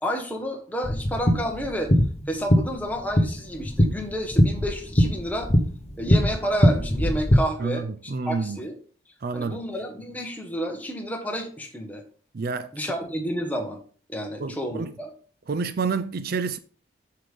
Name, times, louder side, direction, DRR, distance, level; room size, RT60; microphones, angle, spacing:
voice 1, 0.0-1.9 2.3-5.5 6.0-8.7 9.3-12.0 12.7-13.8 14.1-15.1, equal, 10° left, 1.4 m, -30 dB
sound 1, 0.8-7.4, equal, 35° left, 1.1 m, -22 dB
voice 2, 7.6-8.6 9.2-9.6 12.3-12.9 14.4-14.9 15.5-16.6, right 4 dB, 55° right, 0.5 m, -29 dB
7.7 x 6.6 x 3.5 m
head